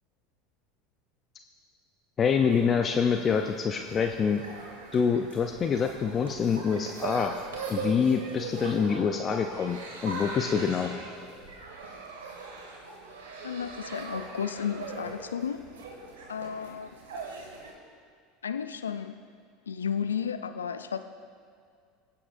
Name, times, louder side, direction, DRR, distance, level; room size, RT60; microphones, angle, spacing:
voice 1, 2.2-4.4 4.9-7.3 7.7-10.9, left 6 dB, 35° left, 5 dB, 0.6 m, -26 dB
sound 1, 2.2-17.7, right 4 dB, 80° right, 1.9 m, -41 dB
voice 2, 13.4-15.6 16.3-16.9 18.4-19.2 19.7-21.0, left 7 dB, 85° left, 10 dB, 0.4 m, -33 dB
23.5 x 8.6 x 2.6 m, 2.1 s
hypercardioid pair, 80°, 0 cm